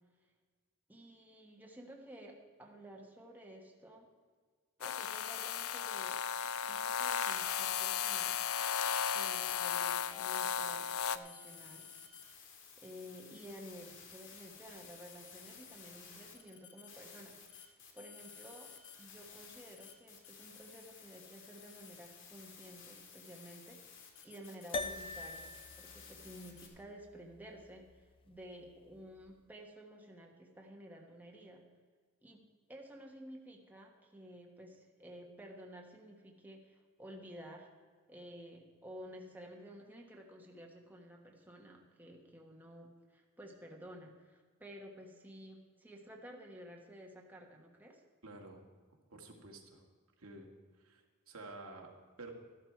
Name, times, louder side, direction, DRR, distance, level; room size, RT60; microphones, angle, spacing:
voice 1, 0.9-4.1 4.8-6.2 6.6-8.4 9.0-11.9 12.8-31.6 32.2-37.7 38.1-48.0, equal, 10° right, 0 dB, 1.4 m, -53 dB
sound 1, 4.8-11.2, left 8 dB, 80° left, 0.6 m, -35 dB
sound 2, 7.6-9.8 10.1-26.7, left 6 dB, 60° left, 2.0 m, -54 dB
sound 3, 24.7-29.3, left 2 dB, 25° left, 0.5 m, -45 dB
voice 2, 48.2-48.6 49.1-49.8 50.2-50.5 50.8-52.3, right 2 dB, 80° right, 1 dB, 2.1 m, -51 dB
13.5 x 12.0 x 4.6 m, 1.5 s
head